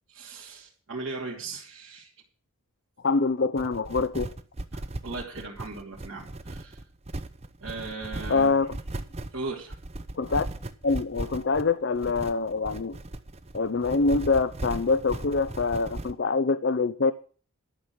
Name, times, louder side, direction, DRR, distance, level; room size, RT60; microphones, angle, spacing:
voice 1, 0.1-2.1 4.7-6.8 7.6-8.6 9.3-9.8, right 3 dB, 70° right, -3 dB, 2.7 m, -38 dB
voice 2, 3.0-4.3 8.3-8.8 10.2-10.5 10.8-13.0 13.5-17.1, left 4 dB, 55° left, 12 dB, 0.5 m, -25 dB
sound 1, 3.6-16.1, right 2 dB, 30° right, 0.7 m, -37 dB
12.0 x 6.2 x 8.5 m, 0.42 s
head